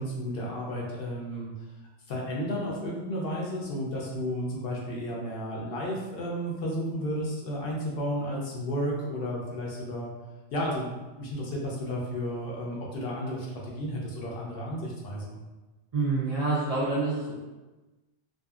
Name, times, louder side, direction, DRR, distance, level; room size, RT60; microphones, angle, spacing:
voice 1, 0.0-1.5 2.1-10.1 10.5-15.4, equal, 65° left, -4 dB, 0.8 m, -32 dB
voice 2, 15.9-17.3, right 3 dB, 60° right, -7 dB, 0.4 m, -27 dB
2.6 x 2.4 x 2.3 m, 1.2 s
omnidirectional pair, 1.2 m